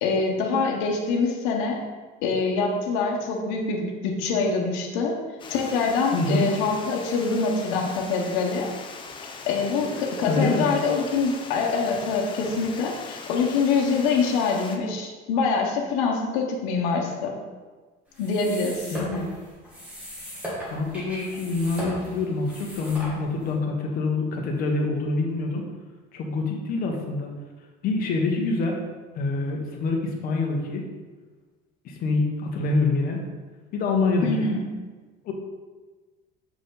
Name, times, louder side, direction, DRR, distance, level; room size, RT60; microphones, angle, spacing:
voice 1, 0.0-1.8 2.2-5.1 5.5-8.7 9.5-17.3 18.2-18.9 34.2-34.7, left 4 dB, 90° left, 0 dB, 1.1 m, -25 dB
Water, 5.4-14.8, left 4 dB, 25° left, 0.6 m, -40 dB
voice 2, 6.1-6.5 10.3-10.7 18.9-19.3 20.7-25.6 26.1-27.3 27.8-28.8 29.1-30.9 31.8-33.2 33.7-34.4 35.2-35.3, left 3 dB, 45° left, 1 dB, 1.2 m, -26 dB
sound 1, 18.1-23.5, equal, 5° right, 1.7 m, -37 dB
7.1 x 4.9 x 3.9 m, 1.3 s
cardioid pair, 160°, 20 cm